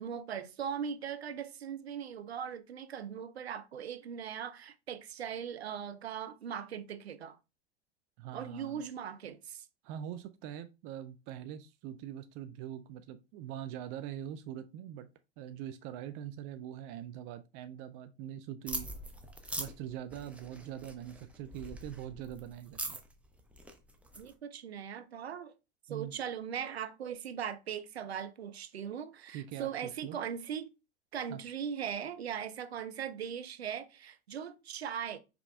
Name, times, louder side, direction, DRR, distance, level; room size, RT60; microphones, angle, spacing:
voice 1, 0.0-7.4 8.3-9.7 24.2-25.5 25.9-30.7 31.1-35.2, right 8 dB, 85° right, 0.6 m, -39 dB
voice 2, 8.2-8.8 9.8-15.1 15.4-18.9 19.6-23.0 25.9-26.1 29.3-30.2 31.3-31.4, right 10 dB, 40° right, 0.4 m, -43 dB
sound 1, 18.7-24.3, right 1 dB, 5° right, 0.7 m, -43 dB
4.8 x 3.5 x 2.3 m
hypercardioid pair, 85°, 31 cm